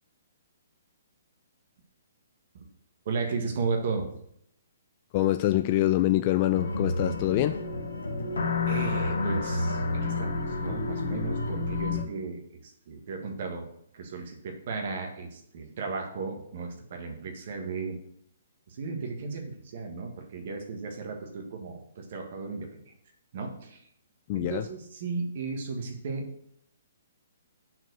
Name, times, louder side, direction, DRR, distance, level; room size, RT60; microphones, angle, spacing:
voice 1, 3.0-4.1 8.6-12.6 12.9-13.7 13.9-18.0 18.7-22.9 23.3-23.8 24.3-26.3, right 4 dB, 55° right, 3 dB, 1.6 m, -35 dB
voice 2, 5.1-7.6 24.3-24.7, left 14 dB, 40° left, 9 dB, 0.3 m, -25 dB
sound 1, 6.5-12.0, left 3 dB, 85° left, 1.4 m, -29 dB
6.0 x 4.6 x 6.3 m, 0.71 s
hypercardioid pair, 140°, 0 cm